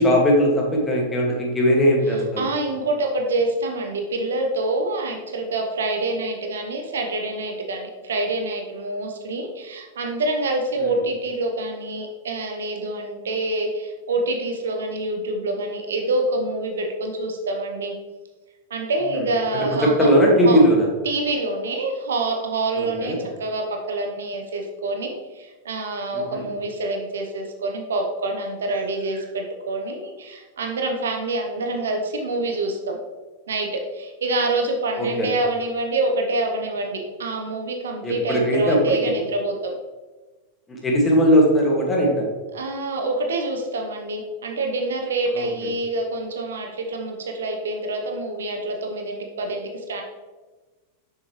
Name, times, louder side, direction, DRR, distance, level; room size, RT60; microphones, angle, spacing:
voice 1, 0.0-2.5 10.8-10.9 19.1-19.2 19.8-20.9 22.8-23.2 26.3-26.5 35.0-35.3 38.0-38.8 40.8-42.3 45.4-45.5, equal, 20° left, -1 dB, 1.9 m, -18 dB
voice 2, 2.4-17.9 18.7-20.1 20.4-20.6 21.0-33.0 33.5-39.7 42.5-50.0, right 2 dB, 65° right, 3 dB, 0.9 m, -26 dB
6.6 x 6.2 x 3.1 m, 1.3 s
figure-of-eight pair, 90°, 0 cm